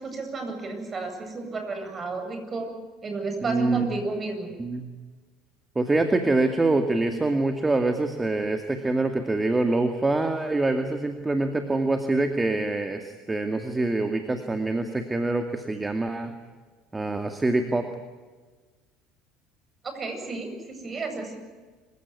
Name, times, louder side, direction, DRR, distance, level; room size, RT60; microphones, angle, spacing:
voice 1, 0.0-2.7 3.0-4.5 19.8-21.4, right 3 dB, 35° right, 6 dB, 8.0 m, -32 dB
voice 2, 3.4-3.8 4.6-4.9 5.8-16.3 16.9-17.9, right 2 dB, 15° right, 6 dB, 2.3 m, -25 dB
27.0 x 16.5 x 9.8 m, 1.4 s
hypercardioid pair, 80°, 0 cm